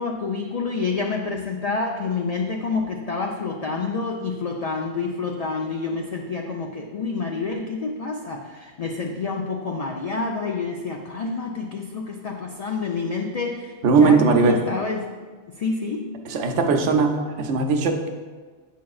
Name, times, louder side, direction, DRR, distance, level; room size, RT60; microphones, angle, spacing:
voice 1, 0.0-15.1 15.6-16.1, left 4 dB, 65° left, 1 dB, 0.3 m, -28 dB
voice 2, 13.8-14.6 16.3-18.1, right 4 dB, 85° right, 5 dB, 1.0 m, -19 dB
8.4 x 5.5 x 2.3 m, 1.5 s
omnidirectional pair, 1.2 m